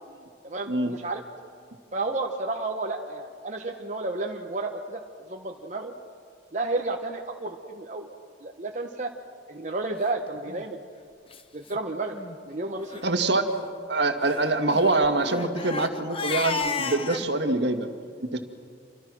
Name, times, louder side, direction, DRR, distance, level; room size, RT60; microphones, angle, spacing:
voice 1, 0.4-1.2 1.9-5.0 5.3-5.9 6.5-8.1 8.4-9.1 9.5-10.8 11.5-13.0, right 2 dB, 40° right, 1 dB, 1.2 m, -31 dB
Crying sobbing, 10.4-10.6 11.3-11.4 11.7-11.8 12.1-12.4 12.8-13.0 14.2-17.3, left 4 dB, 30° left, 1.1 m, -33 dB
voice 2, 13.0-13.5 13.9-17.9 18.2-18.4, right 2 dB, 65° right, 6 dB, 2.0 m, -24 dB
28.0 x 24.0 x 6.3 m, 2.2 s
head